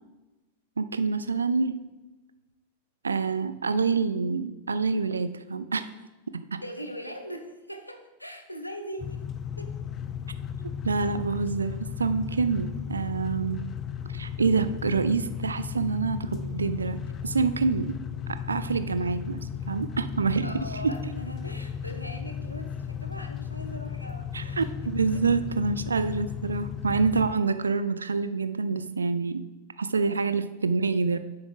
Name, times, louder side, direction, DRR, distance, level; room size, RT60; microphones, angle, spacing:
voice 1, 0.8-1.7 3.0-5.8 6.3-6.6 10.8-13.6 14.1-17.0 17.2-18.0 18.5-20.5 24.3-29.4 29.8-31.2, right 4 dB, 75° right, 12 dB, 0.4 m, -27 dB
voice 2, 6.6-9.2 9.6-9.7 20.4-24.8 25.1-25.4 30.1-30.3, equal, 90° left, 6 dB, 0.7 m, -40 dB
sound 1, 9.0-27.3, left 7 dB, 30° left, 0.4 m, -35 dB
9.8 x 7.0 x 2.2 m, 1.1 s
figure-of-eight pair, 90°, 0 cm